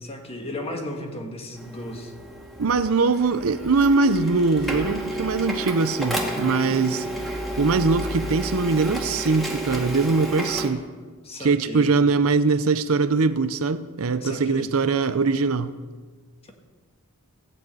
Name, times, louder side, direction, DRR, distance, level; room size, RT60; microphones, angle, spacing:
voice 1, 0.0-2.1 11.2-11.9 14.2-14.7, left 1 dB, 25° left, 1.7 m, -35 dB
Printer, 1.6-10.7, right 1 dB, ahead, 2.0 m, -31 dB
voice 2, 2.6-7.1 7.6-10.9 11.4-15.7, right 4 dB, 70° right, 0.6 m, -22 dB
15.0 x 6.5 x 8.9 m
head